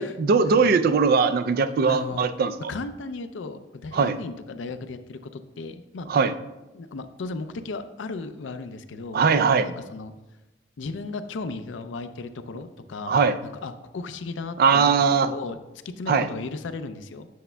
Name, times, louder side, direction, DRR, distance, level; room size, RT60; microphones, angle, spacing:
voice 1, 0.0-2.5 3.9-4.2 6.1-6.3 9.1-9.7 13.1-13.4 14.6-15.3 16.1-16.3, right 5 dB, 55° right, 11 dB, 0.3 m, -20 dB
voice 2, 1.9-2.2 2.7-6.1 6.7-9.3 9.5-10.1 10.8-14.9 15.2-15.6 15.8-17.3, left 3 dB, 85° left, 10 dB, 0.5 m, -35 dB
8.3 x 6.8 x 2.2 m, 1.0 s
head